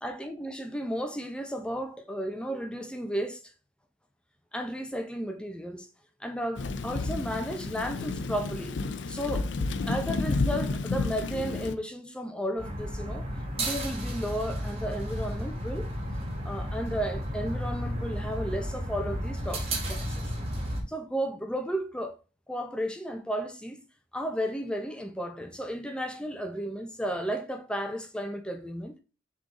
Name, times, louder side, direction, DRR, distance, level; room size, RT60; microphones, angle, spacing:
voice 1, 0.0-3.4 4.5-5.9 6.2-8.8 9.1-9.5 9.9-13.3 13.6-15.9 16.4-20.3 20.9-22.2 22.5-23.8 24.1-28.9, equal, 5° left, 0.8 m, -33 dB
Thunder / Rain, 6.6-11.7, left 3 dB, 75° left, 0.5 m, -31 dB
sound 1, 12.6-20.8, equal, 35° right, 1.9 m, -33 dB
6.5 x 3.9 x 3.8 m
head